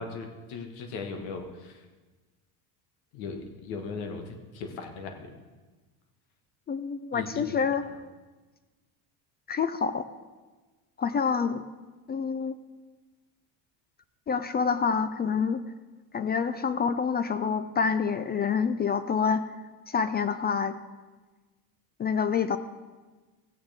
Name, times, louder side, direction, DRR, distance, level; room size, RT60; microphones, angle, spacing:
voice 1, 0.0-1.8 3.1-5.3 7.1-7.6, left 4 dB, 80° left, 5 dB, 1.6 m, -38 dB
voice 2, 6.7-7.8 9.5-10.0 11.0-11.6 12.1-12.6 14.3-15.6 16.1-19.5 19.9-20.8 22.0-22.6, left 6 dB, 25° left, 12 dB, 0.4 m, -27 dB
15.5 x 8.7 x 3.5 m, 1.3 s
supercardioid pair, 100°, 42 cm